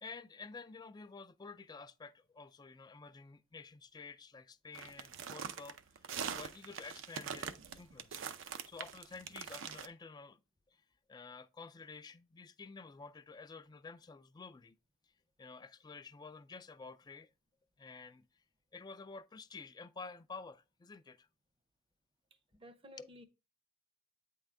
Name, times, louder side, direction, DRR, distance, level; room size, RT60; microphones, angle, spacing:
voice 1, 0.0-5.8 6.3-8.2 8.7-10.4 10.7-10.8 11.1-14.8 15.4-17.3 17.8-18.3 18.7-21.3 23.0-23.1, left 4 dB, 20° left, 0.3 m, -51 dB
sound 1, 4.7-9.9, right 7 dB, 75° right, 0.6 m, -43 dB
voice 2, 22.5-23.2, equal, 30° right, 0.6 m, -55 dB
8.8 x 3.7 x 3.4 m
head